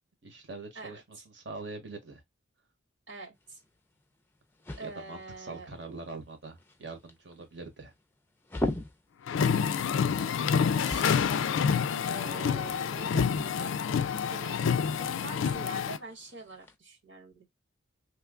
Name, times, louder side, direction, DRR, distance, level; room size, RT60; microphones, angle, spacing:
voice 1, 0.2-2.2 4.8-7.9, right 3 dB, 60° right, 1.2 m, -43 dB
voice 2, 0.7-1.2 3.1-3.6 4.8-5.7 10.8-11.3 12.0-13.8 14.3-14.6 15.0-17.5, right 3 dB, 75° right, 1.7 m, -45 dB
sound 1, 3.3-16.7, left 1 dB, 10° left, 0.5 m, -43 dB
sound 2, 9.3-16.0, left 7 dB, 70° left, 0.3 m, -28 dB
3.0 x 2.2 x 3.6 m
head